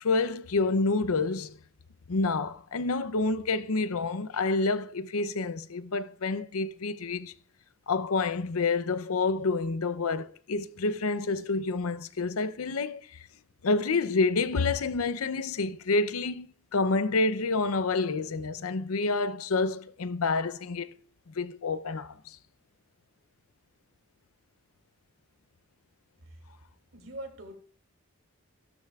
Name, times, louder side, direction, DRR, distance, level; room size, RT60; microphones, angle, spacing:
voice 1, 0.0-1.6 2.1-7.3 7.9-13.3 13.6-16.5 16.7-20.9 21.3-22.4, left 3 dB, 90° left, 0.6 m, -28 dB
voice 2, 26.9-27.6, right 1 dB, 70° right, 2.7 m, -42 dB
15.0 x 12.5 x 2.4 m
head